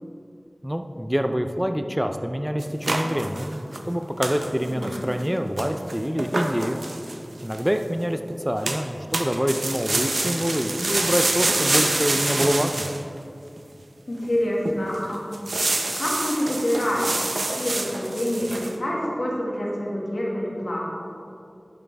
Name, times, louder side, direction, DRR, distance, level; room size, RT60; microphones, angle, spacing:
voice 1, 0.6-6.8 7.4-8.2 8.4-12.9, equal, 10° right, 6 dB, 0.4 m, -26 dB
sound 1, 2.6-3.9 4.2-4.5 4.8-5.3 5.6-7.7 8.6-8.9 9.1-13.0 13.6-13.7 14.2-14.4 14.7-15.0 15.3-18.8, right 2 dB, 85° right, 0.6 m, -27 dB
voice 2, 4.7-5.1 14.1-15.3 16.0-17.1 17.6-20.9, equal, 85° left, -4 dB, 1.6 m, -27 dB
10.5 x 6.2 x 3.4 m, 2.5 s
wide cardioid pair, 45°, 0 cm